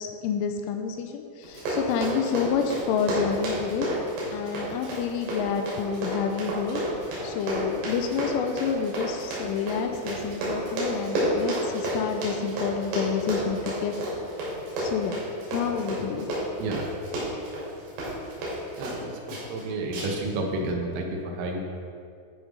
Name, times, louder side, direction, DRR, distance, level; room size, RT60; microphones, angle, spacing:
voice 1, 0.0-3.9 4.3-6.8 7.2-14.1 14.8-15.2 15.5-16.3, left 7 dB, 85° left, 5 dB, 3.0 m, -29 dB
Run, 1.4-19.0 19.3-19.6 19.9-20.3 20.6-20.7, right 1 dB, 60° right, 4.2 m, -31 dB
voice 2, 18.7-21.6, right 2 dB, 80° right, 2 dB, 3.5 m, -31 dB
11.5 x 5.4 x 5.1 m, 2.4 s
omnidirectional pair, 5.8 m